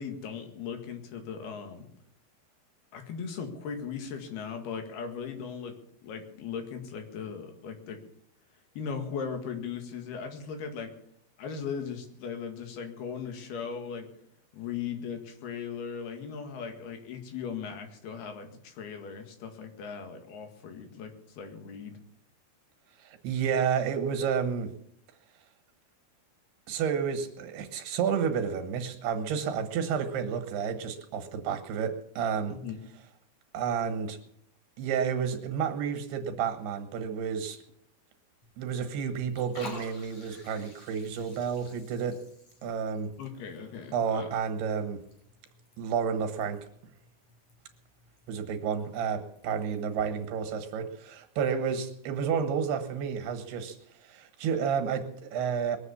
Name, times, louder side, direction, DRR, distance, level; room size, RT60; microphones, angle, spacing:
voice 1, 0.0-1.9 2.9-5.8 6.0-8.0 8.8-10.9 11.4-14.1 14.5-22.0 32.5-32.8 43.2-44.3, left 6 dB, 75° left, 6 dB, 3.9 m, -38 dB
voice 2, 23.0-24.7 26.7-32.6 33.5-34.2 34.8-37.6 38.6-42.2 42.6-43.1 43.9-45.0 45.8-46.7 48.3-53.8 54.0-55.8, right 7 dB, 90° right, 8 dB, 3.6 m, -30 dB
Liquid, 38.4-49.9, left 2 dB, 40° left, 4.4 m, -53 dB
22.0 x 8.2 x 7.2 m, 0.68 s
omnidirectional pair, 4.5 m